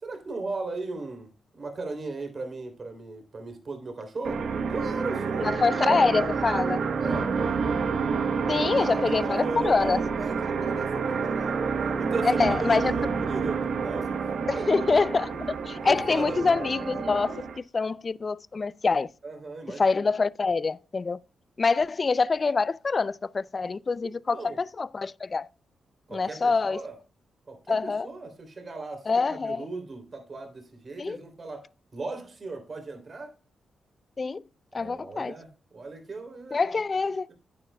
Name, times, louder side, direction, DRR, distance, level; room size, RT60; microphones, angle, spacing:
voice 1, 0.0-1.3 1.6-6.1 7.0-7.6 8.6-14.1 14.5-14.7 15.8-16.5 19.2-20.0 24.0-24.6 26.1-26.9 27.5-33.3 34.7-36.7, right 3 dB, 50° right, 3.3 m, -37 dB
sound 1, 4.2-17.6, right 5 dB, 75° right, 1.2 m, -29 dB
voice 2, 5.4-6.8 8.5-10.0 12.2-12.9 14.5-17.4 17.7-19.1 19.8-21.2 21.6-25.5 26.1-26.8 27.7-28.1 29.1-29.7 31.0-31.2 34.2-34.4 34.7-35.4 36.5-37.3, left 4 dB, 40° left, 0.4 m, -25 dB
10.5 x 9.5 x 2.3 m
cardioid pair, 65°, 0 cm